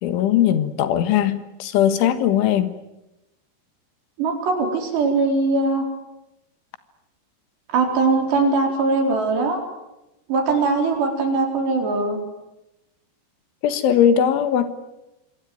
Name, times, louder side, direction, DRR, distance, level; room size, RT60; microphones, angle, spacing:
voice 1, 0.0-2.7 13.6-14.7, left 10 dB, 80° left, 3.9 m, -19 dB
voice 2, 4.2-5.9 7.7-9.6 10.3-12.2, right 3 dB, 65° right, 6.4 m, -21 dB
26.5 x 23.5 x 9.4 m
omnidirectional pair, 5.5 m